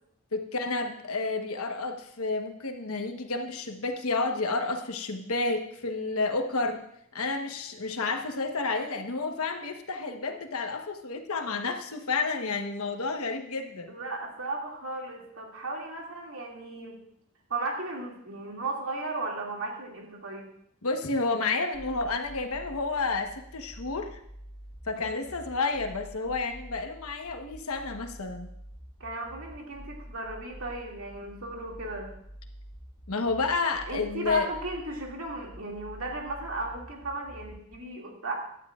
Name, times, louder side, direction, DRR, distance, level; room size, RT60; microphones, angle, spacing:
voice 1, 0.3-6.8 7.1-13.9 20.8-24.2 24.9-28.5 33.1-34.5, left 3 dB, 80° left, 5 dB, 1.2 m, -30 dB
voice 2, 13.9-17.0 17.5-20.5 24.9-25.2 29.0-32.1 33.9-38.3, right 2 dB, 70° right, -1 dB, 2.4 m, -35 dB
sound 1, 21.7-37.7, equal, 40° left, 1.7 m, -47 dB
17.0 x 11.5 x 2.5 m, 0.72 s
head